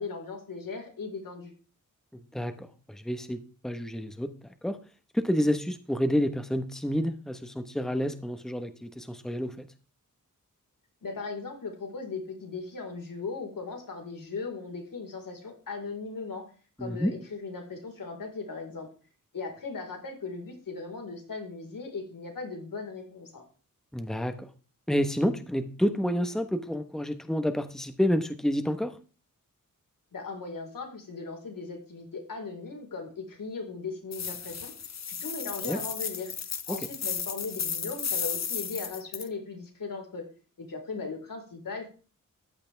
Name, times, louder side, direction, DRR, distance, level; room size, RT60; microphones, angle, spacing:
voice 1, 0.0-1.5 11.0-16.4 16.8-18.9 19.3-23.4 30.1-34.7 35.1-36.3 36.7-40.3 40.6-41.9, left 4 dB, 90° left, 2 dB, 4.7 m, -38 dB
voice 2, 2.3-4.3 4.6-4.8 5.1-9.6 16.8-17.1 23.9-24.5 24.9-29.0 35.6-35.8 36.7-36.8, equal, ahead, 8 dB, 1.2 m, -29 dB
sound 1, 34.1-39.3, left 6 dB, 55° left, 0.9 m, -34 dB
14.5 x 11.5 x 3.5 m, 0.37 s
wide cardioid pair, 145°, 33 cm